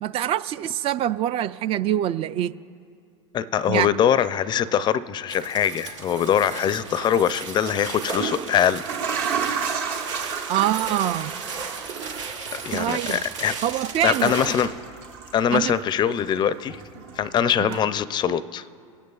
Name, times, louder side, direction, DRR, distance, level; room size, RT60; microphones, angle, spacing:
voice 1, 0.0-2.5 3.7-3.9 10.5-11.3 12.7-13.2 13.6-14.3 15.5-15.7 17.6-17.8, right 12 dB, 35° right, 16 dB, 0.4 m, -24 dB
voice 2, 3.3-8.8 12.5-13.6 14.0-14.7 15.3-16.8 17.2-18.7, left 9 dB, 30° left, 16 dB, 0.4 m, -23 dB
sound 1, 5.3-14.7, right 5 dB, 80° right, 1.1 m, -36 dB
sound 2, 6.8-7.0 7.9-15.9 16.2-17.3 17.7-17.8, right 6 dB, 60° right, 1.3 m, -32 dB
25.5 x 9.3 x 2.4 m, 2.4 s
hypercardioid pair, 100°, 16 cm